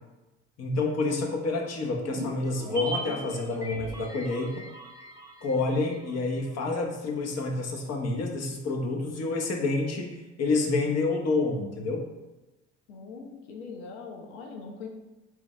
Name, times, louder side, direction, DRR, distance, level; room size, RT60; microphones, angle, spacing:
voice 1, 0.6-4.5 5.4-12.1, left 3 dB, 45° left, 1 dB, 0.9 m, -28 dB
sound 1, 2.0-6.5 6.8-6.9, right 2 dB, 10° right, 0.8 m, -39 dB
voice 2, 12.9-14.9, left 4 dB, 85° left, 2 dB, 0.7 m, -41 dB
3.5 x 3.4 x 3.1 m, 1.1 s
hypercardioid pair, 70°, 35 cm